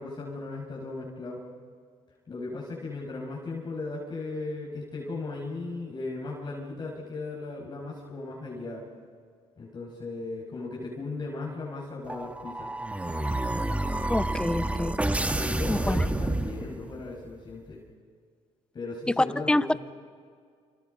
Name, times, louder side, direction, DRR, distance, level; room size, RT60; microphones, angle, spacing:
voice 1, 0.0-1.4 2.3-8.8 9.6-12.7 15.3-17.8 18.7-19.8, left 3 dB, 35° left, -4 dB, 6.0 m, -37 dB
sound 1, 12.1-17.1, right 1 dB, 10° right, 1.4 m, -29 dB
voice 2, 14.1-14.9 15.7-16.1 19.2-19.7, left 1 dB, 10° left, 15 dB, 0.8 m, -26 dB
29.0 x 28.5 x 5.4 m, 2.1 s
cardioid pair, 90°, 12 cm